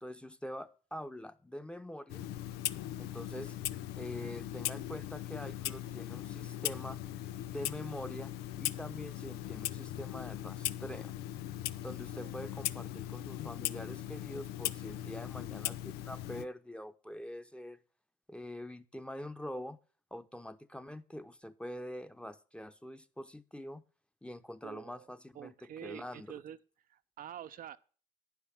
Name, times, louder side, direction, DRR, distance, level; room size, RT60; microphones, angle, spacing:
voice 1, 0.0-2.3 3.0-3.5 4.0-7.0 7.4-11.1 11.8-17.8 18.3-19.8 20.1-23.8 24.2-26.4, left 1 dB, 5° left, 1.0 m, -45 dB
Clock, 2.1-16.4, left 13 dB, 85° left, 0.5 m, -39 dB
voice 2, 24.6-25.1 25.3-26.6 26.9-27.8, right 10 dB, 60° right, 0.7 m, -47 dB
9.8 x 5.9 x 8.2 m
supercardioid pair, 55°, 16 cm